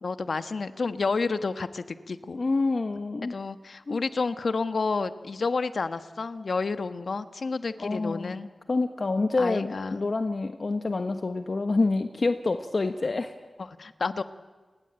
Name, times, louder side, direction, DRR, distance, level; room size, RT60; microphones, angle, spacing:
voice 1, 0.0-2.4 3.3-8.5 9.4-10.1 13.8-14.2, left 4 dB, 75° left, 11 dB, 1.4 m, -30 dB
voice 2, 2.3-3.4 3.9-4.0 7.8-8.3 8.7-13.3, left 3 dB, 60° left, 8 dB, 1.4 m, -27 dB
29.0 x 22.5 x 9.0 m, 1.4 s
wide cardioid pair, 70°, 0 cm